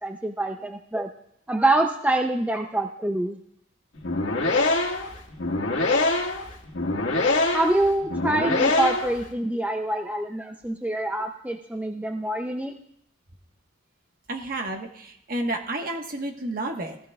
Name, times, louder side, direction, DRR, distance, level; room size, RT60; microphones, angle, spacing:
voice 1, 0.0-1.1 1.5-3.4 7.5-12.7, right 2 dB, 10° right, 4 dB, 0.5 m, -25 dB
sound 1, 4.0-9.2, left 2 dB, 85° left, 1.7 m, -24 dB
voice 2, 14.3-17.0, right 2 dB, 50° right, 3 dB, 1.3 m, -31 dB
16.5 x 15.5 x 2.3 m, 0.74 s
head